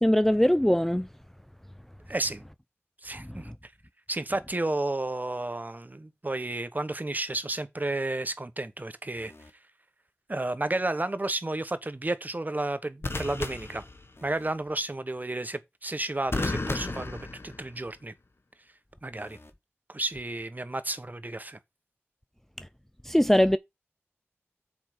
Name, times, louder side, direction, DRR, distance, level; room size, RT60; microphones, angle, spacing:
voice 1, 0.0-1.1 3.2-3.5 22.6-22.7 23.0-23.6, equal, 5° left, 0.4 m, -22 dB
voice 2, 2.1-2.4 3.0-3.7 4.1-9.3 10.3-13.8 14.2-18.1 19.0-19.4 19.9-21.6, right 2 dB, 40° right, 1.0 m, -32 dB
sound 1, 9.2-9.5 13.0-14.5 16.3-18.0 19.2-19.5, left 2 dB, 60° left, 1.1 m, -34 dB
6.9 x 4.8 x 6.0 m
wide cardioid pair, 55°, 5 cm